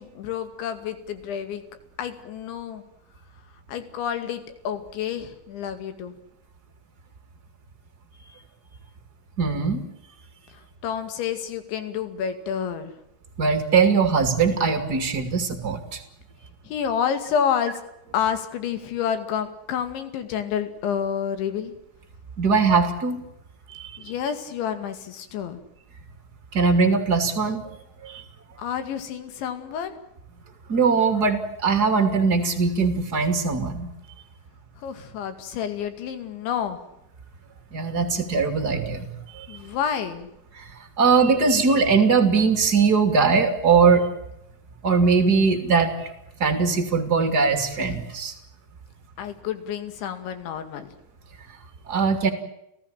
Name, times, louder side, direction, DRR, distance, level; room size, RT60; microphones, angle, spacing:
voice 1, 0.0-1.6 2.0-2.8 3.7-6.1 10.5-12.9 16.6-17.8 18.1-21.7 24.0-25.6 28.6-30.0 34.8-36.8 39.5-40.3 49.2-51.0, left 8 dB, 70° left, 9 dB, 4.5 m, -29 dB
voice 2, 9.4-9.8 13.4-16.0 22.4-23.2 23.7-23.8 26.5-27.6 28.0-28.2 30.7-33.9 37.7-39.1 39.4-39.5 41.0-44.0 44.8-45.9 46.4-48.3 51.9-52.3, right 5 dB, 25° right, 7 dB, 2.3 m, -20 dB
30.0 x 16.0 x 8.9 m, 0.84 s
omnidirectional pair, 5.6 m